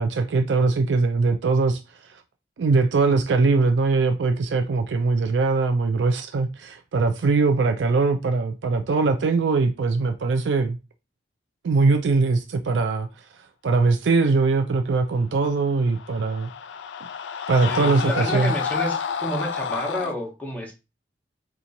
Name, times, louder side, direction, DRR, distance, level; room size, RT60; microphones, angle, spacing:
voice 1, 0.0-1.8 2.1-2.2 2.6-10.8 11.6-13.1 13.6-16.5 17.5-18.5, right 3 dB, 80° right, 0.4 m, -21 dB
Screaming, 15.7-20.2, left 7 dB, 85° left, 0.4 m, -29 dB
voice 2, 17.6-20.7, equal, 10° left, 0.8 m, -30 dB
2.9 x 2.4 x 3.9 m
head